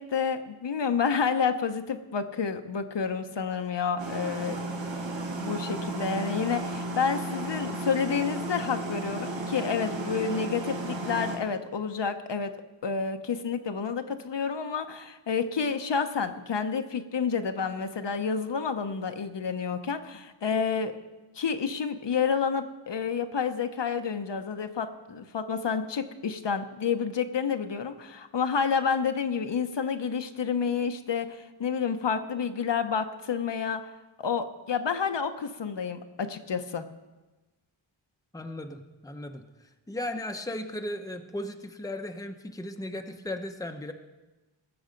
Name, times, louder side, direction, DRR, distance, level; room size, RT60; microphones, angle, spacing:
voice 1, 0.0-4.6 5.4-12.5 12.8-21.0 21.4-33.8 34.2-36.9, left 6 dB, 60° left, 7 dB, 0.9 m, -29 dB
sound 1, 4.0-11.4, right 2 dB, 70° right, 1.7 m, -34 dB
voice 2, 38.3-39.4 39.9-43.9, left 1 dB, 5° left, 6 dB, 0.8 m, -36 dB
18.5 x 7.1 x 5.2 m, 1.1 s
wide cardioid pair, 90°, 48 cm